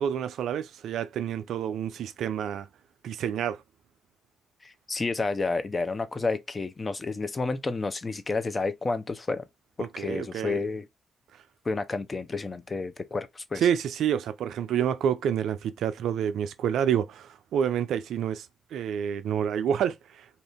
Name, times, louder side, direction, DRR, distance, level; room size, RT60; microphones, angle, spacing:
voice 1, 0.0-2.7 3.0-3.6 9.8-10.6 13.5-18.5 18.7-20.3, right 9 dB, 75° right, 0.3 m, -28 dB
voice 2, 4.6-9.4 9.8-10.9 11.6-13.7, left 3 dB, 35° left, 0.6 m, -30 dB
2.8 x 2.6 x 3.5 m
supercardioid pair, 55°, 0 cm